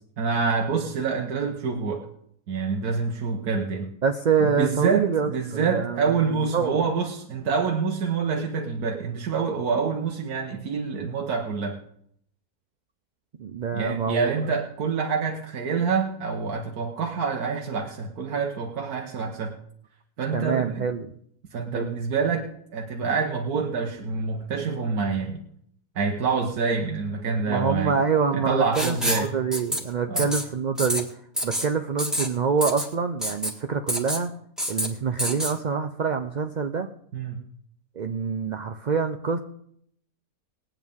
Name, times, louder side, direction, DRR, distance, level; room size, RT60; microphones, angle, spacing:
voice 1, 0.2-2.1 2.5-3.9 4.4-11.8 13.7-19.6 20.2-20.9 21.5-25.4 25.9-28.0 28.3-29.3 30.1-30.3 37.1-37.4, right 5 dB, 90° right, 1 dB, 1.6 m, -27 dB
voice 2, 4.0-6.0 6.3-6.8 13.4-14.3 20.3-21.1 21.7-22.0 27.5-31.1 31.4-34.3 34.7-36.9 38.0-39.4, right 5 dB, 60° right, 6 dB, 0.4 m, -26 dB
Writing, 28.7-29.3 29.5-29.8 30.2-30.4 30.8-31.0 31.4-31.7 32.0-32.3 32.6-32.9 33.2-33.5 33.9-34.2 34.6-34.9 35.2-35.5, equal, ahead, 1.5 m, -27 dB
20.5 x 8.9 x 3.6 m, 0.69 s
omnidirectional pair, 1.6 m